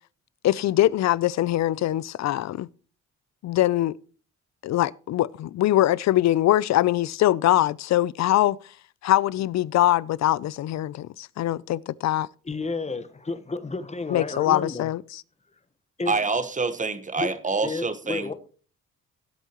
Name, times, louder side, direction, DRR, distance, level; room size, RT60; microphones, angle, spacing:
voice 1, 0.4-2.7 3.4-4.0 4.6-8.6 9.0-12.3 14.1-15.2, left 14 dB, 65° left, 0.5 m, -22 dB
voice 2, 12.4-14.9 16.0-16.2 17.2-17.3 17.6-18.3, left 3 dB, 20° left, 1.3 m, -31 dB
voice 3, 16.1-18.3, right 4 dB, 25° right, 1.3 m, -26 dB
18.0 x 8.3 x 3.0 m
cardioid pair, 90°, 30 cm